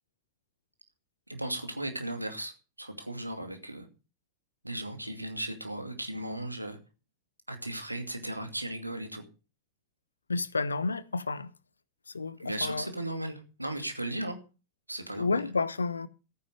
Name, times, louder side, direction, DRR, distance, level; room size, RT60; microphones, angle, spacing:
voice 1, 1.3-3.9 4.6-6.8 7.5-9.2 12.4-14.4 14.9-15.5, right 1 dB, 85° right, 2.4 m, -36 dB
voice 2, 10.3-11.5 12.1-12.9 15.2-16.1, left 4 dB, 75° left, 0.9 m, -30 dB
14.0 x 9.6 x 6.7 m
figure-of-eight pair, 90°, 0 cm